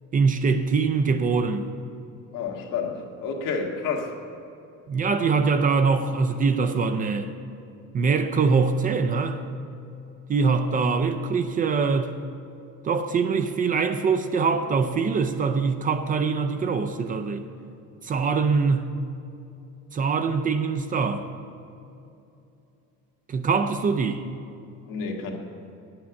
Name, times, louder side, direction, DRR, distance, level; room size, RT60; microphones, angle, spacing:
voice 1, 0.1-1.7 4.9-7.3 7.9-9.4 10.3-12.2 12.8-17.4 18.0-18.9 19.9-21.3 23.3-24.2, right 5 dB, 25° right, 8 dB, 0.4 m, -23 dB
voice 2, 2.3-4.1 24.9-25.4, left 5 dB, 75° left, 0 dB, 1.7 m, -30 dB
9.6 x 8.8 x 6.9 m, 2.7 s
cardioid pair, 170°, 32 cm